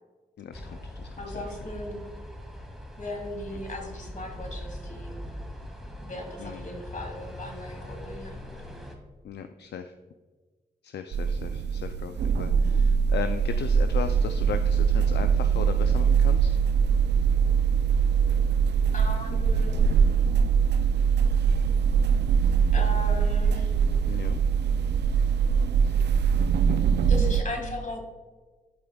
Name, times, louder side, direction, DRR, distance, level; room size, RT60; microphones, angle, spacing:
voice 1, 0.4-0.7 1.0-1.1 1.3-1.4 3.5-3.6 6.4-6.7 9.2-9.9 10.8-16.6 24.0-24.4 25.8-26.0 26.7-27.2, left 8 dB, 70° left, 8 dB, 0.4 m, -37 dB
sound 1, 0.5-9.0, equal, ahead, 1.8 m, -41 dB
voice 2, 1.2-2.0 3.0-5.1 6.0-8.4 18.9-19.8 22.7-23.7 27.1-28.0, left 1 dB, 45° left, 2 dB, 2.0 m, -37 dB
sound 2, 11.1-27.4, right 6 dB, 70° right, 0.4 m, -22 dB
11.5 x 5.0 x 2.3 m, 1.3 s
supercardioid pair, 45°, 19 cm